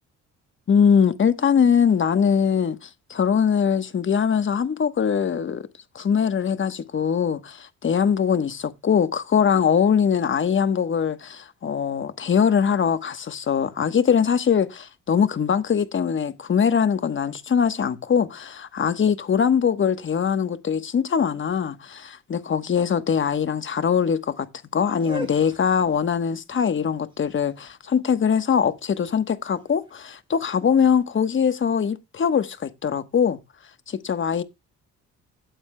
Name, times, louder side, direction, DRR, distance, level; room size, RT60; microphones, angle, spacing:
voice 1, 0.7-5.6 5.9-24.5 24.7-33.4 33.9-34.4, left 7 dB, 40° left, 1.2 m, -22 dB
sound 1, 24.9-30.8, right 1 dB, 15° right, 4.2 m, -42 dB
16.0 x 8.6 x 2.2 m
cardioid pair, 90°, 30 cm